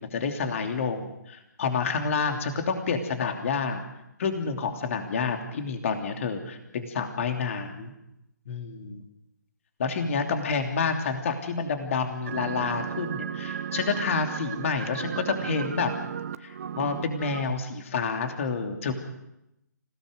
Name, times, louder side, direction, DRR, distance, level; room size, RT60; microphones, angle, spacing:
voice 1, 0.0-3.8 4.2-7.9 8.5-9.0 9.8-15.9 16.4-18.9, left 5 dB, 45° left, 5 dB, 3.0 m, -29 dB
sound 1, 12.3-17.4, right 8 dB, 45° right, 1.0 m, -34 dB
26.0 x 17.5 x 6.6 m, 0.87 s
figure-of-eight pair, 140°, 10 cm